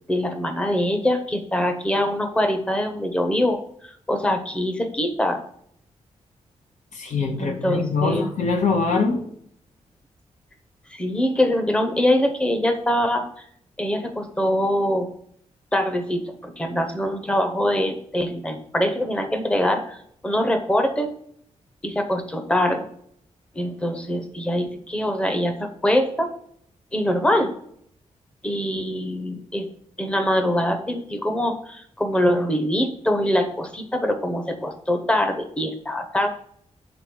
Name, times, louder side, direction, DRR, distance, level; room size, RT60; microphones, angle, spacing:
voice 1, 0.1-5.4 7.4-8.2 10.9-13.3 13.8-15.1 15.7-21.1 21.8-22.9 23.5-26.3 26.9-27.5 28.4-29.7 30.0-36.3, left 1 dB, 10° left, 6 dB, 0.7 m, -23 dB
voice 2, 6.9-9.2, left 4 dB, 85° left, 4 dB, 1.3 m, -23 dB
6.9 x 4.0 x 6.0 m, 0.67 s
wide cardioid pair, 175°, 12 cm